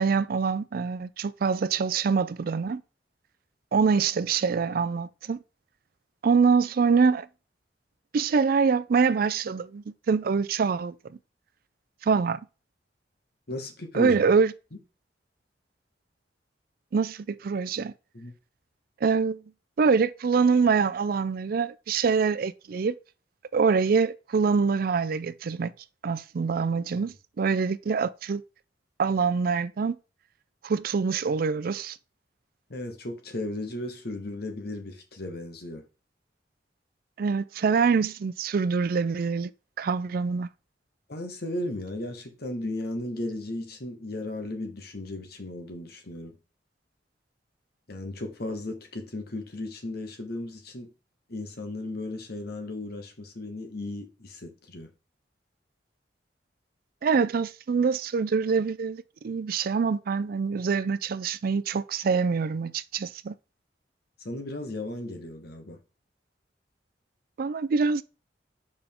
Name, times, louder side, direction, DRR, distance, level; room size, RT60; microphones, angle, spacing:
voice 1, 0.0-2.8 3.7-5.4 6.2-7.3 8.1-10.9 12.0-12.4 13.9-14.5 16.9-17.9 19.0-19.4 19.8-22.9 23.5-25.7 26.0-28.4 29.0-30.0 30.6-32.0 37.2-39.5 39.8-40.5 57.0-63.3 67.4-68.0, right 5 dB, 55° right, 0.4 m, -25 dB
voice 2, 13.5-14.2 14.7-14.8 18.1-18.3 32.7-35.8 41.1-46.4 47.9-50.9 51.3-54.9 64.2-65.8, left 1 dB, 60° left, 1.3 m, -35 dB
6.9 x 5.2 x 3.6 m
head